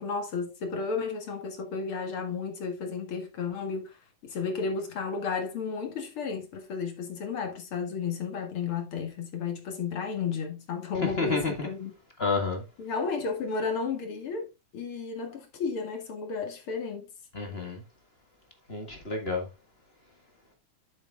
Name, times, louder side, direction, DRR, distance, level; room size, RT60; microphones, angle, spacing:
voice 1, 0.0-4.0 4.2-11.9 12.8-17.1, left 5 dB, 50° left, 2.5 m, -33 dB
voice 2, 11.2-11.7 12.2-12.6 17.3-17.8 18.7-19.5, left 4 dB, 30° left, 1.3 m, -29 dB
10.5 x 8.1 x 2.3 m
omnidirectional pair, 3.5 m